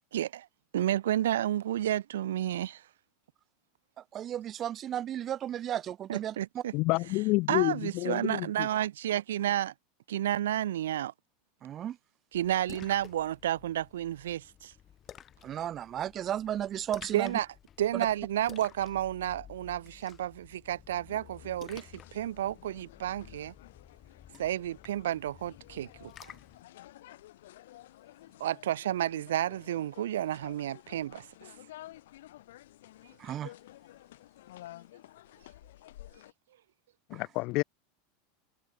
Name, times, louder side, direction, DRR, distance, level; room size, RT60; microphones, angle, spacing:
voice 1, 0.1-0.5 0.7-2.8 6.1-6.7 7.5-9.7 10.1-11.1 12.3-14.7 17.1-17.5 17.8-23.5 24.4-26.3 28.4-31.3, right 12 dB, 75° right, 0.4 m, -31 dB
voice 2, 4.1-6.6 11.6-12.0 15.4-17.4 17.9-18.1 33.2-33.5 37.1-37.2, right 11 dB, 40° right, 0.7 m, -34 dB
voice 3, 6.7-8.7 37.1-37.6, left 24 dB, 55° left, 0.4 m, -29 dB
Splash splatter, 12.3-26.6, left 10 dB, 35° left, 2.4 m, -53 dB
sound 1, 21.1-36.3, left 15 dB, 70° left, 0.8 m, -52 dB
hypercardioid pair, 90°, 0 cm